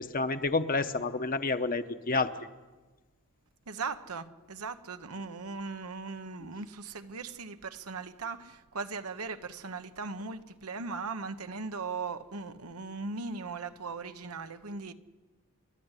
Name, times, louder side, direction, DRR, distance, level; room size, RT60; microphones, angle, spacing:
voice 1, 0.0-2.3, left 3 dB, 40° left, 0.9 m, -29 dB
voice 2, 3.7-14.9, right 4 dB, 90° right, 1.1 m, -38 dB
30.0 x 13.0 x 8.2 m
head